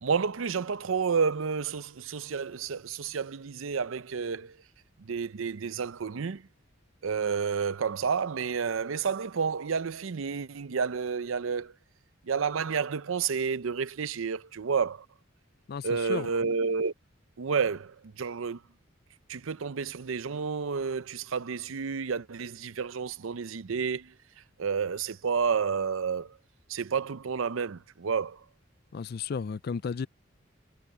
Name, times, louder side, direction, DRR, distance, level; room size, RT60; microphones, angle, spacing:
voice 1, 0.0-4.6 5.0-6.4 7.0-11.7 12.3-15.1 15.8-16.9 17.4-18.6 19.3-24.1 24.6-26.4 26.7-28.4, right 5 dB, 85° right, 0.6 m, -30 dB
voice 2, 15.7-16.3 28.9-30.1, left 5 dB, 50° left, 0.4 m, -33 dB
head